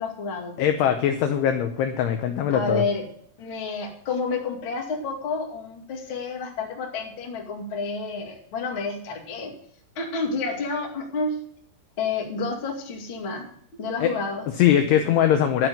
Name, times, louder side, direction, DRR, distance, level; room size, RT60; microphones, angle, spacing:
voice 1, 0.0-0.6 2.5-3.0 3.4-9.5 10.0-11.4 12.0-13.5 13.8-14.4, left 4 dB, 40° left, 0 dB, 1.8 m, -29 dB
voice 2, 0.6-2.8 14.0-14.1 14.6-15.7, left 9 dB, 80° left, 6 dB, 2.4 m, -21 dB
12.0 x 6.0 x 9.3 m, 0.64 s
omnidirectional pair, 5.8 m